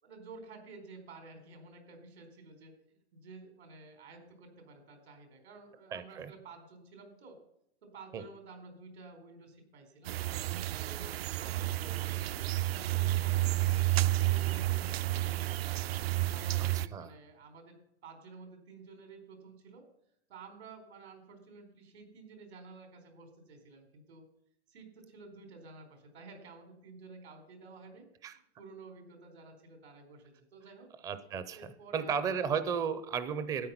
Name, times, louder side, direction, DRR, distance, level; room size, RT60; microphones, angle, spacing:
voice 1, 0.0-7.4 7.8-10.2 10.8-13.9 14.2-15.7 16.3-17.8 18.0-19.9 20.3-24.3 24.7-30.9 31.5-32.5, right 4 dB, 85° right, 6 dB, 4.6 m, -52 dB
voice 2, 5.9-6.3 8.1-8.2 16.6-17.1 28.2-28.3 31.0-33.7, right 6 dB, 10° right, 13 dB, 0.4 m, -34 dB
sound 1, 10.1-16.9, right 16 dB, 65° right, 0.6 m, -31 dB
13.0 x 9.4 x 5.7 m, 0.74 s
hypercardioid pair, 155°, 32 cm